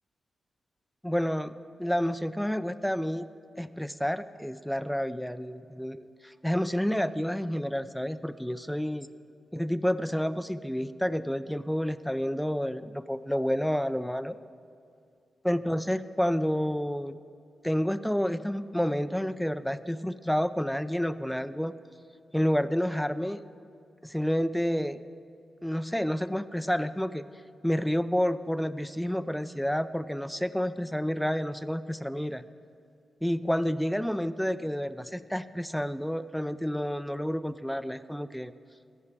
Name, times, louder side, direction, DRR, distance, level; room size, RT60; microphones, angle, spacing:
voice 1, 1.0-1.5 1.8-3.3 3.6-9.1 9.5-14.4 15.4-17.2 17.6-21.7 22.3-23.4 24.0-25.0 25.6-27.3 27.6-32.4 33.2-38.5, equal, 5° left, 13 dB, 0.4 m, -29 dB
14.0 x 5.6 x 7.4 m, 2.4 s
cardioid pair, 70°, 0 cm